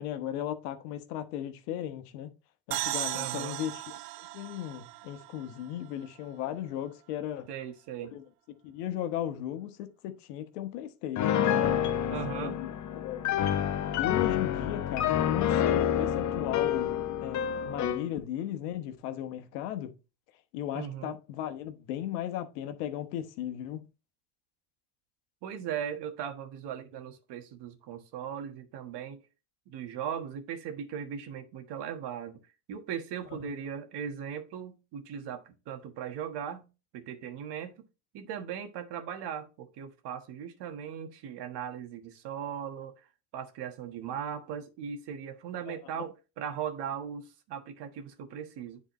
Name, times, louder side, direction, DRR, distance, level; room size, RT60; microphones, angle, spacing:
voice 1, 0.0-2.3 2.7-4.0 4.3-7.5 8.1-8.2 8.6-11.9 12.3-12.7 12.9-13.2 14.0-20.0 20.5-23.8 33.3-33.5 45.7-45.8, left 11 dB, 70° left, 1.1 m, -36 dB
sound 1, 2.7-6.3, right 17 dB, 75° right, 0.5 m, -37 dB
voice 2, 3.1-3.6 7.5-8.2 12.1-12.6 20.7-21.1 25.4-29.2 29.7-32.4 32.7-36.7 36.9-37.9 38.1-42.9 43.3-48.8, right 8 dB, 55° right, 1.5 m, -38 dB
Piano, 11.2-18.1, left 10 dB, 35° left, 0.8 m, -28 dB
10.0 x 4.1 x 3.1 m
hypercardioid pair, 70°, 49 cm